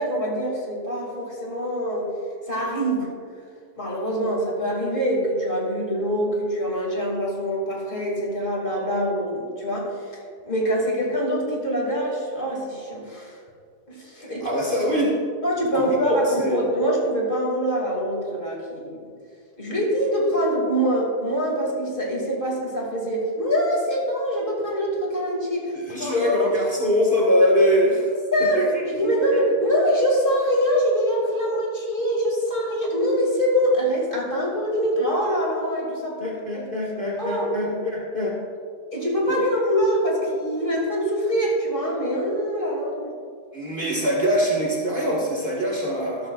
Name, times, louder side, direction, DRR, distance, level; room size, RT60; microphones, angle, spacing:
voice 1, 0.0-2.1 2.5-3.1 3.8-10.0 10.4-13.4 13.9-14.5 15.4-19.0 19.6-25.7 26.0-26.5 28.3-36.2 36.5-36.6 37.2-37.5 38.9-43.1, equal, 30° left, -3 dB, 2.6 m, -24 dB
voice 2, 14.2-15.2 15.7-16.6 25.7-28.1 28.4-28.8 29.3-29.4 36.2-38.4 39.3-39.4 43.5-46.3, equal, 35° right, -3 dB, 1.7 m, -23 dB
13.0 x 13.0 x 2.4 m, 2.2 s
omnidirectional pair, 1.7 m